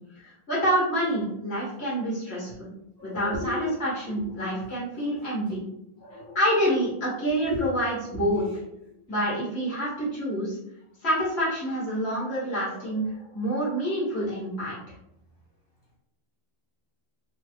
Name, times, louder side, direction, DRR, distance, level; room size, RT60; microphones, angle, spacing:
voice 1, 0.2-2.7 3.0-5.6 6.4-8.5 9.1-10.6 11.0-14.8, equal, 55° left, -7 dB, 1.6 m, -27 dB
voice 2, 3.0-3.6 4.1-4.5 6.0-6.4 7.4-7.6, left 2 dB, 50° right, -4 dB, 1.1 m, -35 dB
3.1 x 2.3 x 3.1 m, 0.83 s
omnidirectional pair, 1.3 m